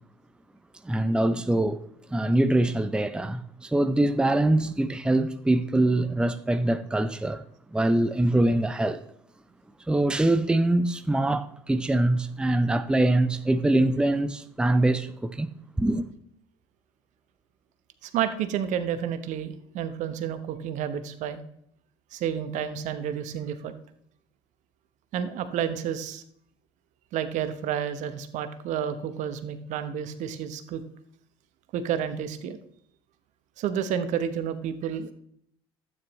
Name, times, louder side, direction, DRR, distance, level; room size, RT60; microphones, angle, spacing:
voice 1, 0.8-1.8 2.1-7.4 7.7-9.0 9.9-15.5 15.8-16.1, right 1 dB, 5° right, 0.6 m, -24 dB
voice 2, 18.0-21.4 22.1-23.7 25.1-26.2 27.1-30.8 31.7-32.6 33.6-35.1, right 9 dB, 60° right, 1.0 m, -30 dB
12.5 x 9.1 x 3.1 m
hypercardioid pair, 65°, 14 cm